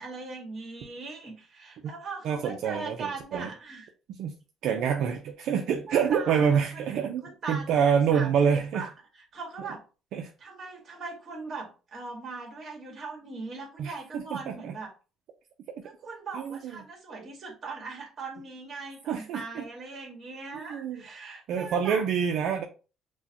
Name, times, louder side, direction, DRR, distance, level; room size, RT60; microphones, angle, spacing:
voice 1, 0.0-3.9 5.9-6.8 7.2-8.9 9.3-9.9 10.4-14.9 15.8-22.0, right 4 dB, 40° right, 0 dB, 1.8 m, -40 dB
voice 2, 2.2-3.5 4.2-4.3 4.6-8.9 10.1-10.3 13.8-14.7 16.3-16.8 17.2-17.3 19.1-19.6 20.7-21.0 21.5-22.6, right 7 dB, 70° right, 2 dB, 0.5 m, -27 dB
6.2 x 2.2 x 2.9 m, 0.33 s
cardioid pair, 120°, 0 cm